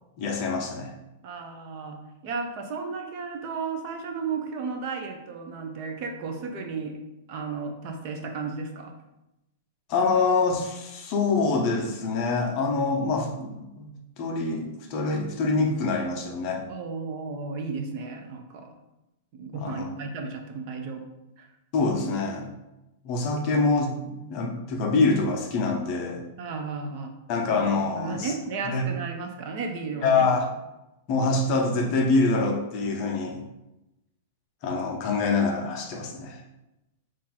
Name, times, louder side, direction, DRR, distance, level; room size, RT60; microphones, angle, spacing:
voice 1, 0.2-0.9 9.9-16.7 19.5-19.9 21.7-22.5 23.0-26.2 27.3-28.3 28.6-28.8 30.0-30.4 31.1-33.4 34.6-36.4, left 3 dB, 30° left, 1 dB, 0.5 m, -25 dB
voice 2, 1.2-7.0 7.3-8.9 16.7-18.7 19.3-21.0 21.4-21.5 26.4-27.2 27.5-27.6 28.0-30.3, right 4 dB, 30° right, 3 dB, 0.4 m, -34 dB
3.9 x 2.4 x 4.1 m, 0.94 s
supercardioid pair, 180°, 0 cm